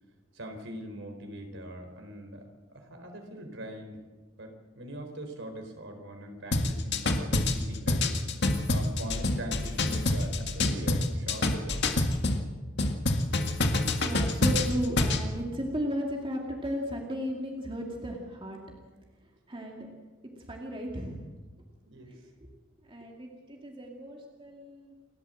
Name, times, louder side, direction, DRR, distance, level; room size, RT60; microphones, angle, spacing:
voice 1, 0.3-4.0 4.4-8.1 8.7-11.9 21.8-22.1, equal, 60° right, 4 dB, 4.2 m, -42 dB
sound 1, 6.5-12.4 12.8-15.2, left 2 dB, 55° left, 1.8 m, -26 dB
voice 2, 14.0-18.6 19.5-19.9 20.5-21.2 22.1-22.2 22.9-24.9, equal, 25° right, 0 dB, 2.5 m, -35 dB
29.0 x 13.0 x 7.8 m, 1.3 s
head